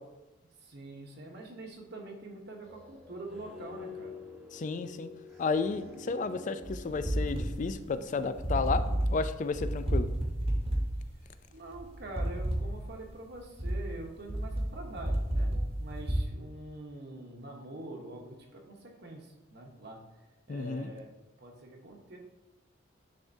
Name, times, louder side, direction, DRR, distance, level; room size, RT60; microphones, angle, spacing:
voice 1, 0.6-4.2 11.5-20.1 20.5-21.1 21.4-22.2, right 2 dB, 55° right, 2 dB, 1.0 m, -45 dB
sound 1, 2.6-9.1, left 3 dB, ahead, 1.2 m, -48 dB
voice 2, 4.5-5.1 5.4-8.8 9.1-10.1 20.5-20.9, left 4 dB, 40° left, 10 dB, 0.3 m, -32 dB
sound 2, 6.6-16.2, right 1 dB, 30° right, 1.0 m, -31 dB
10.0 x 3.5 x 2.7 m, 1.0 s
head